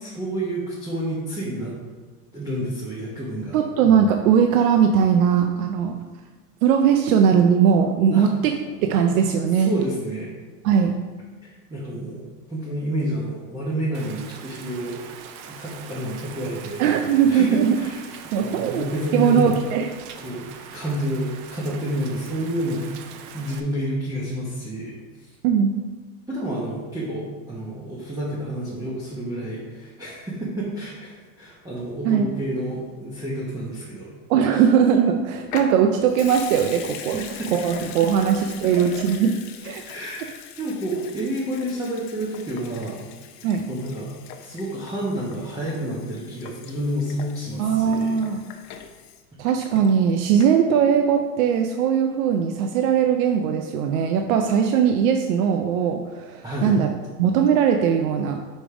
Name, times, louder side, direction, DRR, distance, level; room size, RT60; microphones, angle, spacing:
voice 1, 0.0-1.7 2.3-3.6 8.1-8.3 9.6-10.3 11.4-15.0 15.5-18.0 18.3-19.6 20.1-20.4 20.7-22.8 23.3-25.0 26.3-34.1 34.5-34.6 37.1-37.5 38.8-39.0 39.8-43.0 43.7-48.2 56.4-56.8, equal, 10° right, -7 dB, 1.1 m, -29 dB
voice 2, 3.5-6.0 6.6-8.5 8.8-9.7 10.6-11.0 16.8-17.8 18.3-18.9 19.1-19.9 25.4-25.8 32.0-32.3 34.3-37.2 37.5-39.4 39.6-39.8 43.4-43.7 47.6-48.4 49.4-56.9 57.2-58.4, right 7 dB, 65° right, 5 dB, 0.7 m, -20 dB
Rain, 13.9-23.6, right 7 dB, 30° right, 0.4 m, -42 dB
Water tap faucet / Sink (filling or washing) / Liquid, 35.5-50.1 50.4-50.5, left 9 dB, 40° left, 0.7 m, -41 dB
5.3 x 5.2 x 5.0 m, 1.3 s
supercardioid pair, 130°, 46 cm